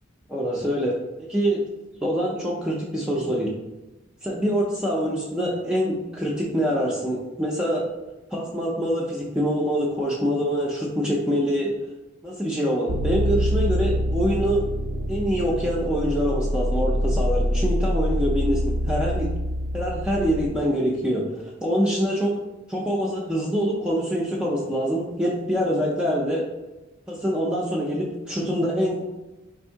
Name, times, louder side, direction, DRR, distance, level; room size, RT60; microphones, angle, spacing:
voice 1, 0.3-0.9 1.2-1.6 2.0-3.5 4.2-7.8 8.3-11.7 12.2-14.6 15.1-19.3 19.7-21.2 21.6-22.3 22.7-26.4 27.1-29.0, equal, 5° right, -4 dB, 0.4 m, -25 dB
sound 1, 12.9-20.5, equal, 85° right, 0.5 m, -25 dB
3.5 x 2.6 x 4.4 m, 1.0 s
head